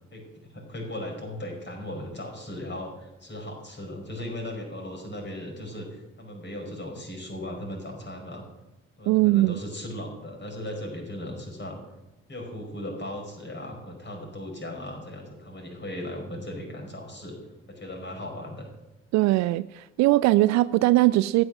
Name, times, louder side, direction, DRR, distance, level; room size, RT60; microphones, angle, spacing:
voice 1, 0.1-8.4 9.0-11.8 12.3-17.4 17.7-18.7, left 1 dB, 30° left, 1 dB, 5.3 m, -37 dB
voice 2, 9.1-9.6 19.1-21.4, right 18 dB, 50° right, 17 dB, 0.4 m, -20 dB
14.5 x 9.6 x 6.2 m, 1.0 s
figure-of-eight pair, 45°, 37 cm